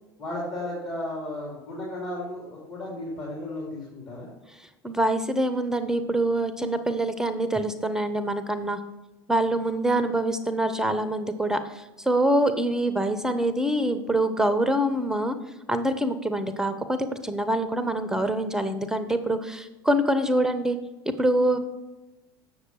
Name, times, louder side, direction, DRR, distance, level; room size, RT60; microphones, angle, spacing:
voice 1, 0.2-4.3, left 1 dB, 45° left, -5 dB, 3.0 m, -34 dB
voice 2, 4.8-8.8 9.3-15.4 15.7-20.8 21.1-21.6, right 1 dB, 5° right, 10 dB, 0.7 m, -25 dB
8.0 x 6.4 x 4.7 m, 1.0 s
figure-of-eight pair, 75°, 12 cm